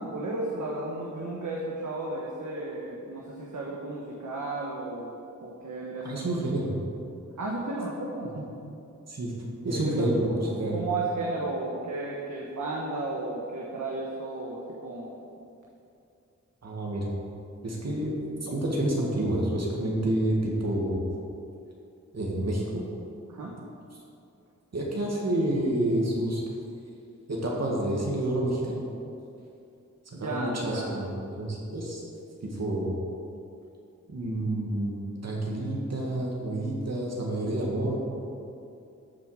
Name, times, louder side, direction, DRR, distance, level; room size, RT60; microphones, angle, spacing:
voice 1, 0.0-6.4 7.4-8.4 9.6-15.2 23.3-23.6 30.1-31.0, right 2 dB, 75° right, -3 dB, 1.4 m, -34 dB
voice 2, 6.0-6.7 8.3-8.4 9.1-9.3 9.6-10.8 16.6-17.1 17.6-18.1 18.4-21.0 22.1-22.8 24.7-26.4 27.3-28.8 30.2-31.1 31.4-32.0 32.4-32.9 34.1-38.0, right 1 dB, 60° right, -3 dB, 2.1 m, -28 dB
13.5 x 7.1 x 5.1 m, 2.7 s
wide cardioid pair, 115°, 30 cm